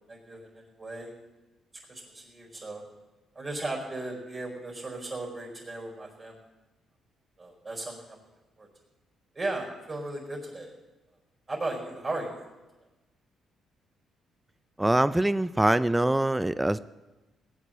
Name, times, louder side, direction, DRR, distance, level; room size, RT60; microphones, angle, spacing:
voice 1, 0.1-1.1 1.9-2.8 3.3-6.4 7.4-8.2 8.6-8.7 9.3-10.7 11.5-12.4, right 2 dB, 30° right, -1 dB, 4.7 m, -36 dB
voice 2, 14.8-16.8, right 1 dB, 10° right, 15 dB, 0.5 m, -24 dB
18.5 x 8.2 x 7.6 m, 1.1 s
cardioid pair, 90°, 0 cm